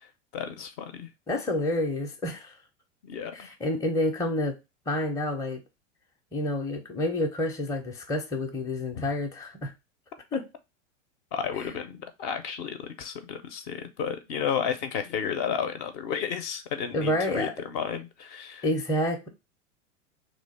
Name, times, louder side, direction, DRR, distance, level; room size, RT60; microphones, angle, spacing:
voice 1, 0.3-1.1 3.0-3.5 8.9-9.1 11.3-18.7, left 7 dB, 45° left, 0.7 m, -32 dB
voice 2, 1.3-2.6 3.3-4.6 4.9-5.6 6.3-9.7 10.3-10.5 16.9-17.5 18.6-19.3, left 1 dB, 10° left, 0.6 m, -28 dB
3.0 x 2.2 x 4.1 m
hypercardioid pair, 95°, 39 cm